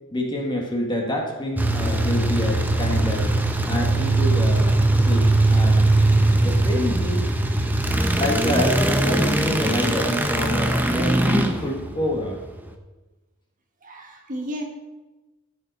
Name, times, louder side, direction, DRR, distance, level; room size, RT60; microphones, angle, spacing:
voice 1, 0.1-3.3 3.7-4.8 5.0-5.9 6.4-7.3 7.9-12.4, left 1 dB, 20° left, 0 dB, 1.7 m, -27 dB
sound 1, 1.6-12.7, right 2 dB, 10° right, 0.8 m, -20 dB
voice 2, 13.8-14.6, equal, 40° right, 2 dB, 1.6 m, -33 dB
13.5 x 6.8 x 4.1 m, 1.1 s
head